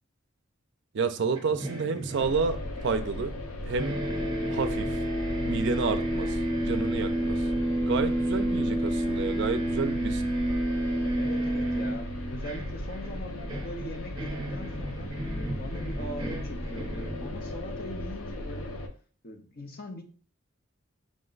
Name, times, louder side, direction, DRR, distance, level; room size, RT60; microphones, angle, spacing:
voice 1, 0.9-3.3 3.7-4.0 4.5-5.0 5.4-7.4 7.8-10.2, right 4 dB, 55° right, 9 dB, 0.4 m, -30 dB
sound 1, 1.3-3.5 3.8-17.8, right 1 dB, 20° right, 0.8 m, -31 dB
sound 2, 2.2-18.9, left 1 dB, 80° left, 0.6 m, -37 dB
voice 2, 11.1-15.1 15.6-18.8 19.2-20.0, left 1 dB, 45° left, 5 dB, 0.7 m, -41 dB
5.0 x 2.2 x 3.8 m, 0.41 s
head